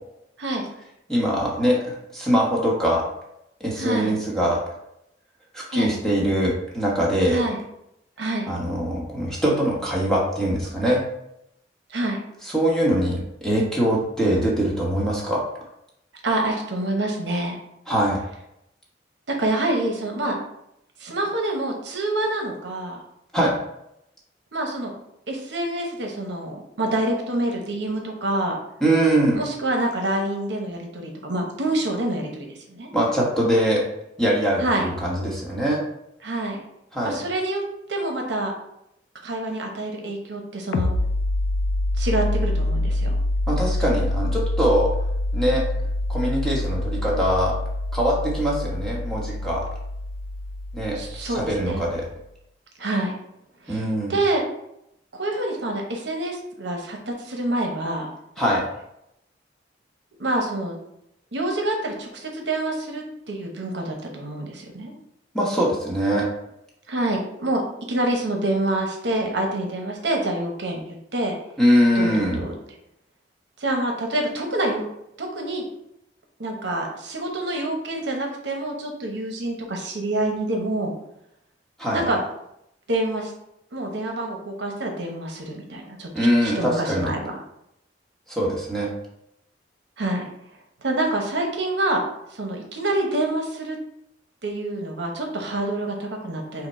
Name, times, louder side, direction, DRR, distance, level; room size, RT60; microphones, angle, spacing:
voice 1, 1.1-3.0 3.6-4.6 5.5-7.4 8.5-11.0 12.4-15.4 17.9-18.2 23.3-23.6 28.8-29.4 32.9-33.8 34.2-35.8 36.9-37.2 43.5-44.9 45.3-45.6 46.1-47.5 47.9-49.6 50.7-52.1 53.7-54.1 58.4-58.6 65.3-66.3 71.6-72.4 81.8-82.0 86.1-87.1 88.3-88.9, equal, 5° left, -5 dB, 1.0 m, -22 dB
voice 2, 3.8-4.1 5.7-5.9 7.3-7.6 8.2-8.5 11.9-12.2 16.2-17.6 19.3-20.4 21.0-23.0 24.5-24.9 25.3-28.6 29.3-32.9 34.6-34.9 36.2-36.6 37.0-37.6 37.9-38.5 39.2-40.9 42.0-43.1 50.9-51.8 52.8-53.1 53.6-53.8 54.1-54.4 55.1-58.1 60.2-60.8 61.3-64.9 66.9-67.6 67.9-71.4 71.9-72.5 73.6-74.9 75.2-75.6 76.4-80.9 81.9-82.3 82.9-83.3 83.7-87.4 90.0-90.2 90.8-92.0 92.3-93.8 94.4-96.7, right 1 dB, 70° right, 1 dB, 0.9 m, -27 dB
sound 1, 40.7-52.1, left 1 dB, 75° left, 0.4 m, -26 dB
5.7 x 2.1 x 4.2 m, 0.79 s
head